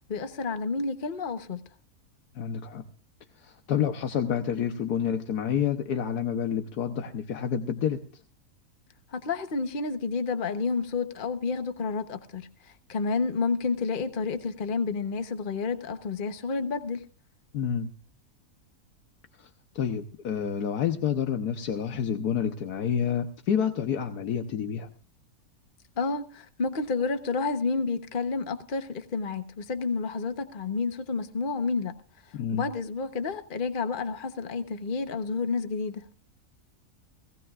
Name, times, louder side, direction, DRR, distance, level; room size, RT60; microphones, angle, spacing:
voice 1, 0.1-1.6 9.1-17.0 26.0-31.9 32.5-36.1, left 4 dB, 35° left, 1.2 m, -30 dB
voice 2, 2.3-2.8 3.4-8.0 17.5-17.9 19.4-19.5 19.7-24.9 32.3-32.6, left 8 dB, 85° left, 1.5 m, -28 dB
19.0 x 17.0 x 2.5 m
omnidirectional pair, 1.6 m